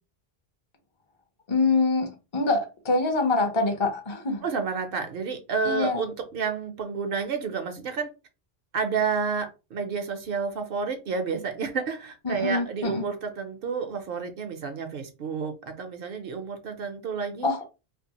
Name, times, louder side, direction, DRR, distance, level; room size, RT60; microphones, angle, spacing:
voice 1, 1.5-4.4 5.6-6.0 12.2-13.1 17.4-17.7, left 3 dB, 40° left, 0.4 m, -25 dB
voice 2, 4.4-8.1 8.7-17.5, right 5 dB, 65° right, 0.7 m, -30 dB
2.5 x 2.3 x 2.7 m
omnidirectional pair, 1.0 m